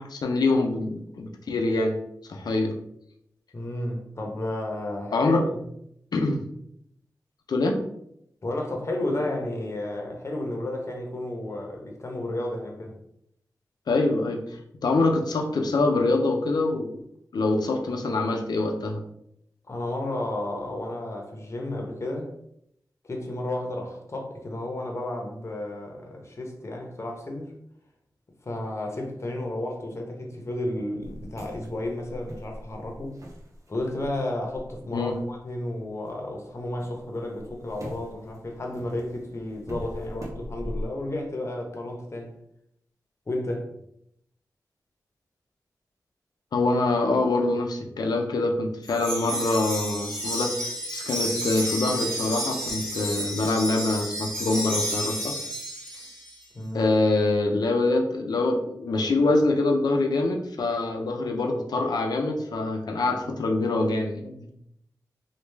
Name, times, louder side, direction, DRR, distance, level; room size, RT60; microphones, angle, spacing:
voice 1, 0.0-2.0 2.3-2.7 5.1-5.4 6.1-6.4 7.5-7.8 13.9-14.4 14.8-17.0 17.3-19.0 34.9-35.2 46.5-55.3 56.7-64.5, left 2 dB, 80° left, 3 dB, 0.5 m, -25 dB
voice 2, 3.5-5.6 8.4-13.0 19.7-22.3 23.1-27.5 28.4-33.1 33.7-42.3 43.3-43.7 56.5-56.9, left 1 dB, 45° left, 1 dB, 0.8 m, -32 dB
sound 1, 31.0-36.1 36.5-40.9, equal, 50° right, 0.8 m, -41 dB
Wind chime, 48.8-56.3, equal, 10° left, 1.1 m, -31 dB
3.1 x 2.3 x 3.3 m, 0.75 s
cardioid pair, 55°, 7 cm